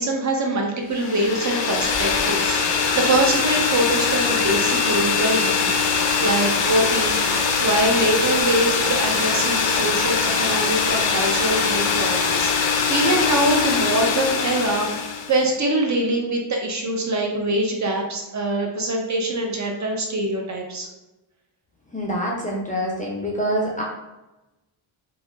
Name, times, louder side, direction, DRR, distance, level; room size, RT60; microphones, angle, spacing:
voice 1, 0.0-5.7 6.2-7.2 7.6-14.9 15.3-20.9, right 1 dB, 40° right, 1 dB, 0.5 m, -23 dB
sound 1, 1.0-15.4, left 5 dB, 65° left, 0.6 m, -22 dB
voice 2, 21.9-23.8, equal, 20° left, -4 dB, 0.4 m, -25 dB
4.1 x 2.6 x 2.3 m, 1.0 s
wide cardioid pair, 155°, 47 cm